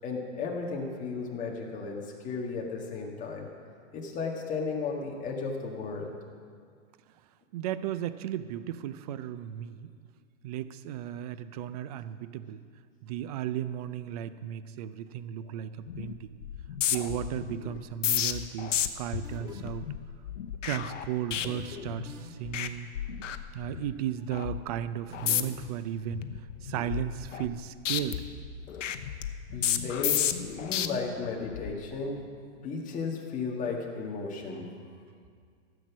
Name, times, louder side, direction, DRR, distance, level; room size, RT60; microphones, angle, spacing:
voice 1, 0.0-3.5 3.9-6.1 29.5-32.2 32.6-34.7, left 4 dB, 20° left, 0 dB, 1.7 m, -34 dB
voice 2, 7.5-9.9 10.4-12.6 13.0-16.3 16.9-19.9 20.6-22.9 23.5-26.2 26.6-28.2, right 10 dB, 35° right, 13 dB, 0.4 m, -35 dB
sound 1, 15.9-16.1 16.4-22.1 22.4-22.7 23.0-23.9 24.3-24.6 25.1-25.7 26.1-27.6 27.9-30.9 31.4-31.7, left 10 dB, 80° left, 0.9 m, -32 dB
sound 2, 19.2-19.8 21.4-21.7 22.1-22.6 25.1-25.4, equal, 10° right, 1.4 m, -47 dB
15.5 x 7.9 x 6.1 m, 2.1 s
hypercardioid pair, 145°, 37 cm